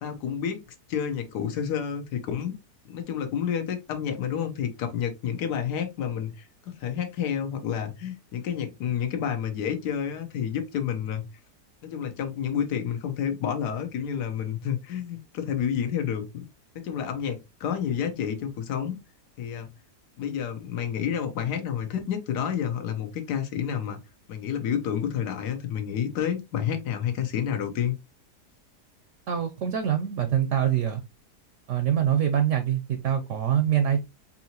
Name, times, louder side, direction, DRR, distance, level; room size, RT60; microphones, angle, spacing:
voice 1, 0.0-0.6 0.9-2.5 2.8-11.3 11.8-16.4 16.8-18.9 19.4-19.7 20.2-24.0 24.3-28.0, left 8 dB, 80° left, 1.4 m, -29 dB
voice 2, 29.3-31.0 31.7-34.0, right 9 dB, 65° right, 0.8 m, -24 dB
4.7 x 2.8 x 2.8 m
omnidirectional pair, 1.7 m